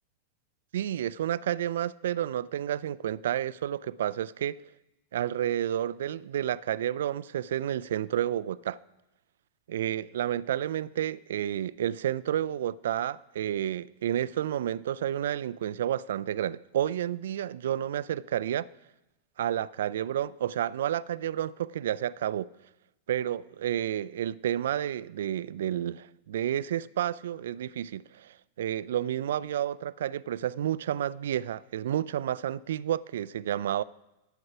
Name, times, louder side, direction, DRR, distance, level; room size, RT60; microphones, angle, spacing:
voice 1, 0.7-4.6 5.1-8.8 9.7-18.7 19.4-22.5 23.1-33.8, right 11 dB, 60° right, 0.3 m, -30 dB
11.5 x 9.6 x 4.9 m
figure-of-eight pair, 90°, 0 cm